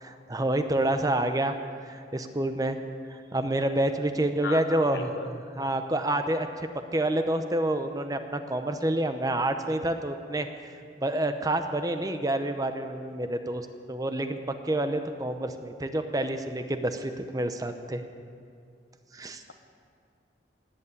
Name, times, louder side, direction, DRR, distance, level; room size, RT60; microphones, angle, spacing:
voice 1, 0.0-1.5 1.9-2.8 3.1-5.1 5.6-6.5 6.9-10.5 11.0-14.4 14.6-18.0 19.1-19.4, right 1 dB, 20° right, 8 dB, 0.7 m, -28 dB
voice 2, 4.4-5.3, left 4 dB, 80° left, 7 dB, 1.1 m, -36 dB
18.0 x 8.3 x 8.5 m, 2.3 s
head